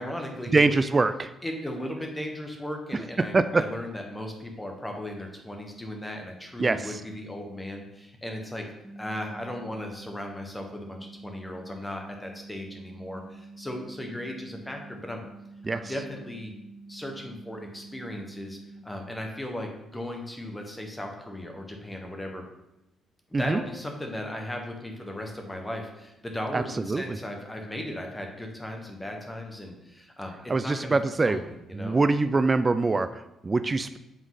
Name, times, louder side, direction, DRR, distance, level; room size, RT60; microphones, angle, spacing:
voice 1, 0.0-0.8 1.4-8.6 9.0-15.2 15.7-16.5 16.9-22.4 23.3-30.4 30.6-30.9 31.2-32.0, left 1 dB, 10° left, 2 dB, 1.3 m, -37 dB
voice 2, 0.5-1.3 3.2-3.6 6.6-6.8 15.6-15.8 23.3-23.6 26.5-27.2 30.5-31.4 31.7-34.0, right 3 dB, 25° right, 11 dB, 0.3 m, -24 dB
sound 1, 8.8-18.8, right 3 dB, 5° right, 0.9 m, -47 dB
7.4 x 3.7 x 4.0 m, 0.92 s
cardioid pair, 90°, 0 cm